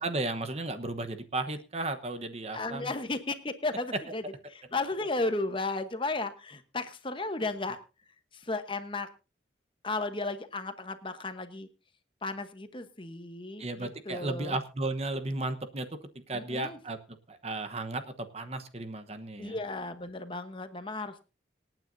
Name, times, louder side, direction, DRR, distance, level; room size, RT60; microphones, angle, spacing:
voice 1, 0.0-2.9 13.6-15.9 16.3-17.0 17.3-19.6, right 2 dB, 35° right, 8 dB, 1.0 m, -34 dB
voice 2, 2.5-4.2 4.5-7.8 8.3-9.1 9.8-11.7 12.2-14.6 16.3-16.8 19.4-21.2, left 2 dB, 30° left, 9 dB, 1.0 m, -34 dB
26.5 x 9.1 x 2.7 m, 0.32 s
head